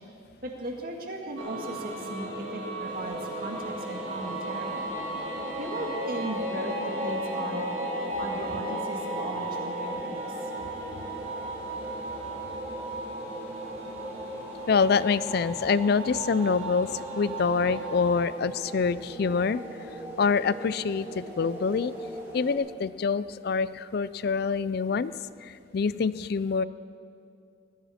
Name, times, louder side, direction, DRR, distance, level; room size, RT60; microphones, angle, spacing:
voice 1, 0.4-4.8 5.6-7.7 8.2-10.2, right 1 dB, 50° right, 1 dB, 1.9 m, -36 dB
sound 1, 1.4-18.2, right 1 dB, 75° right, 2.7 m, -36 dB
sound 2, 2.8-22.5, right 1 dB, 15° right, 3.4 m, -40 dB
voice 2, 14.7-19.6 20.2-21.9 22.3-25.1 25.4-26.6, left 5 dB, 55° left, 17 dB, 0.4 m, -26 dB
20.0 x 14.5 x 4.3 m, 2.5 s
head